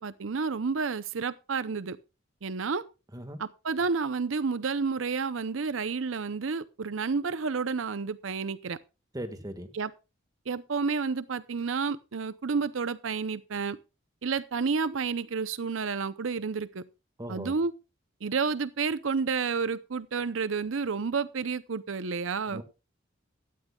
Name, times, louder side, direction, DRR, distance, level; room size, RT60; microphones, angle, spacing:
voice 1, 0.0-2.0 2.4-2.8 3.4-8.8 9.7-9.9 10.5-13.8 14.2-16.8 17.3-17.7 18.2-22.6, right 5 dB, 75° right, 0.6 m, -30 dB
voice 2, 9.1-9.7 17.2-17.5 22.5-22.6, right 1 dB, 20° right, 1.7 m, -38 dB
17.0 x 12.5 x 2.3 m
head